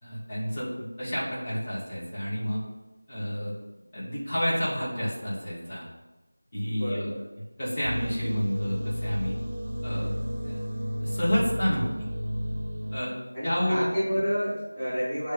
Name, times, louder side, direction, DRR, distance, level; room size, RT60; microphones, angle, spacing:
voice 1, 0.0-2.6 3.1-3.5 3.9-5.9 6.5-7.2 7.6-9.3 9.8-10.1 10.4-10.6 11.0-11.9 12.9-13.2 13.4-13.9, equal, 25° left, -9 dB, 2.4 m, -29 dB
voice 2, 6.7-7.2 9.9-10.2 13.3-15.3, equal, 5° left, -18 dB, 1.9 m, -30 dB
sound 1, 7.8-13.0, equal, 40° right, 1.1 m, -32 dB
7.4 x 3.5 x 5.5 m, 1.1 s
figure-of-eight pair, 175°, 0 cm